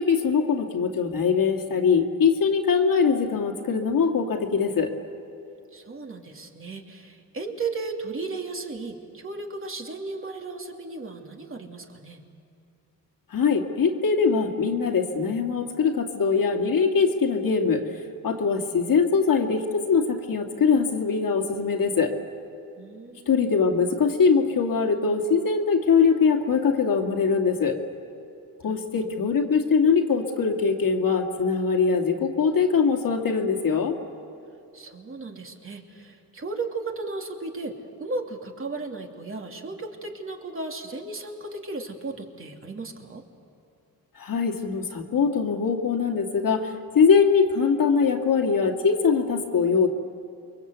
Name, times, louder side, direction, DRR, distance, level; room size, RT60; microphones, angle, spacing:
voice 1, 0.0-4.9 13.3-17.8 18.2-22.2 23.3-27.8 28.6-34.0 44.2-49.9, left 5 dB, 65° left, 3 dB, 2.5 m, -22 dB
voice 2, 5.7-12.2 22.8-23.3 28.6-29.2 34.7-43.2, right 3 dB, 35° right, 2 dB, 3.1 m, -35 dB
29.0 x 23.0 x 8.3 m, 2.6 s
cardioid pair, 95°, 36 cm